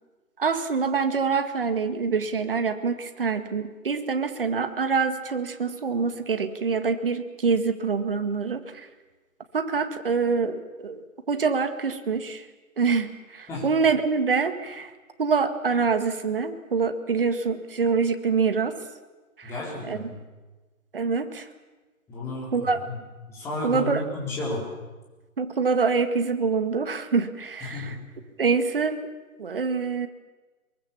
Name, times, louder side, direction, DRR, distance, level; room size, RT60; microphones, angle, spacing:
voice 1, 0.4-8.9 9.5-11.0 11.3-12.5 12.8-14.9 15.2-18.8 19.4-19.5 19.8-20.1 20.9-21.5 22.5-22.8 23.6-24.0 25.4-28.0 28.4-29.0 29.4-30.1, right 5 dB, 40° right, 9 dB, 2.0 m, -25 dB
voice 2, 19.4-20.2 22.1-23.0 23.3-24.6 27.6-28.0, left 2 dB, 5° left, -4 dB, 4.2 m, -32 dB
24.0 x 23.0 x 7.3 m, 1.2 s
hypercardioid pair, 165°, 43 cm